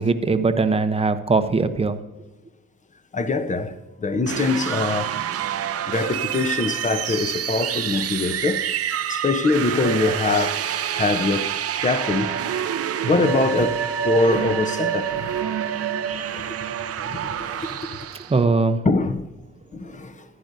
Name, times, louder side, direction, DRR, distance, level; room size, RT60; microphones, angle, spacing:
voice 1, 0.0-2.0 18.3-18.8, right 4 dB, 20° right, 0.8 m, -20 dB
voice 2, 3.1-3.7 4.0-5.2 5.9-8.6 9.1-11.5 11.8-12.5 13.0-15.4 16.3-16.6 17.0-17.8 18.8-19.3 19.7-20.2, left 3 dB, 25° left, 0.8 m, -23 dB
sound 1, 4.2-18.4, right 10 dB, 55° right, 0.6 m, -27 dB
Wind instrument woodwind instrument, 12.0-16.2, right 5 dB, 80° right, 1.1 m, -36 dB
15.0 x 10.0 x 2.7 m
cardioid pair, 90°, 30 cm